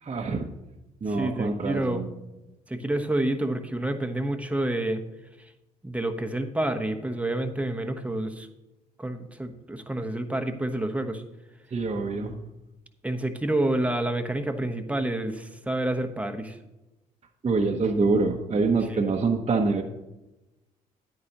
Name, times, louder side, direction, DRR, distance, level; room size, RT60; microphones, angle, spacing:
voice 1, 0.0-0.5 1.0-2.1 11.7-12.4 17.4-19.8, right 3 dB, 35° right, 0 dB, 1.0 m, -25 dB
voice 2, 1.1-2.0 2.7-5.0 5.8-8.5 9.0-11.2 13.0-16.6 18.9-19.1, right 1 dB, 5° right, 6 dB, 1.0 m, -28 dB
9.7 x 9.3 x 2.9 m, 0.99 s
hypercardioid pair, 55°, 18 cm